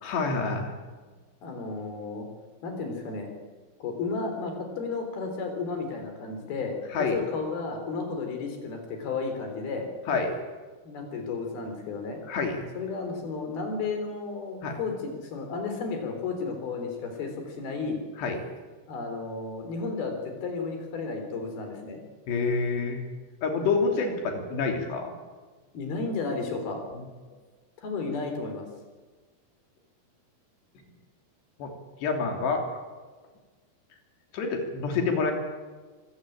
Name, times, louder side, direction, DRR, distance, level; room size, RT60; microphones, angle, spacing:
voice 1, 0.0-0.7 6.9-7.2 10.1-10.4 12.3-12.6 14.6-14.8 18.2-18.4 22.3-23.0 23.4-25.1 27.3-27.4 31.6-31.7 32.0-32.6 34.3-35.3, left 4 dB, 85° left, 3 dB, 5.2 m, -27 dB
voice 2, 1.4-2.3 2.6-3.3 3.8-9.9 10.8-12.2 12.8-18.0 18.9-22.0 25.7-26.8 27.8-28.7, left 4 dB, 65° left, 4 dB, 5.7 m, -33 dB
24.5 x 15.0 x 8.8 m, 1.4 s
omnidirectional pair, 4.7 m